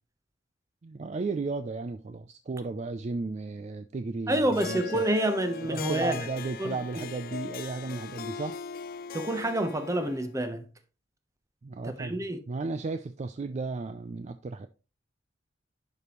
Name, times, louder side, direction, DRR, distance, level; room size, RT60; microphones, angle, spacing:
voice 1, 0.8-5.0 5.7-8.6 11.6-14.7, right 3 dB, 35° right, 0.4 m, -34 dB
voice 2, 4.3-6.2 6.6-6.8 9.1-10.6 12.0-12.4, right 1 dB, 15° right, 0.9 m, -28 dB
Harp, 4.5-10.3, left 6 dB, 50° left, 0.4 m, -40 dB
11.0 x 5.2 x 3.0 m
head